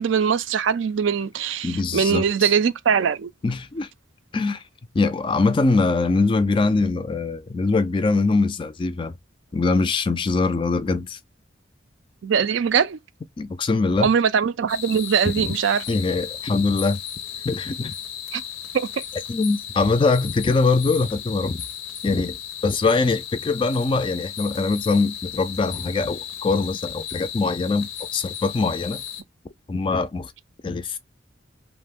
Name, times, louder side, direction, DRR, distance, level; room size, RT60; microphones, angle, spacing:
voice 1, 0.0-3.3 12.2-13.0 14.0-15.8 18.3-18.4 18.7-18.9, right 7 dB, 75° right, 0.4 m, -21 dB
voice 2, 1.6-2.5 3.4-3.9 4.3-4.6 4.9-9.1 9.5-11.2 13.4-14.1 15.9-17.0 17.4-17.9 19.3-21.6 22.0-22.4 22.6-29.0 29.7-30.3 30.6-31.0, left 3 dB, 25° left, 0.3 m, -22 dB
sound 1, 14.7-29.2, left 9 dB, 85° left, 0.6 m, -35 dB
2.5 x 2.1 x 3.4 m
head